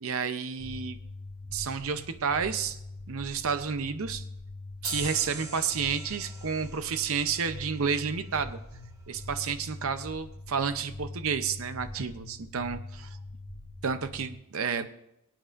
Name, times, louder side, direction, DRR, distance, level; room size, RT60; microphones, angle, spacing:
voice 1, 0.0-1.0 1.5-2.8 3.1-4.2 4.8-8.6 9.1-13.2 13.8-14.9, right 6 dB, 65° right, 10 dB, 0.6 m, -31 dB
sound 1, 0.6-14.3, left 2 dB, 35° left, 1.6 m, -43 dB
sound 2, 4.8-8.2, right 2 dB, 15° right, 1.3 m, -41 dB
23.5 x 8.8 x 2.5 m, 0.85 s
head